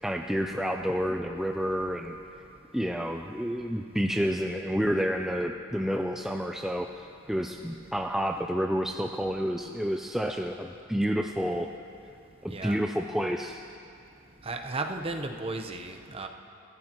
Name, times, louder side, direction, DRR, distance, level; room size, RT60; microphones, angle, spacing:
voice 1, 0.0-2.1 2.7-11.7 12.4-13.6, equal, ahead, 3 dB, 0.4 m, -29 dB
voice 2, 14.4-16.3, right 2 dB, 25° right, 5 dB, 0.8 m, -34 dB
29.5 x 14.5 x 3.0 m, 2.7 s
head